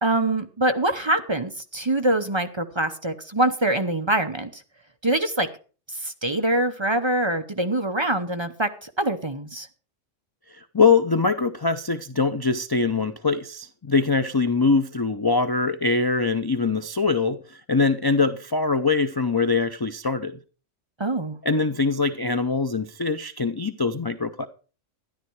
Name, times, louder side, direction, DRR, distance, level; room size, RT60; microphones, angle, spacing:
voice 1, 0.0-4.6 5.0-5.5 5.9-9.7 21.0-21.4, right 1 dB, 25° right, 0.7 m, -24 dB
voice 2, 10.5-20.4 21.4-24.5, left 4 dB, 35° left, 0.4 m, -23 dB
12.5 x 10.5 x 4.6 m
omnidirectional pair, 1.3 m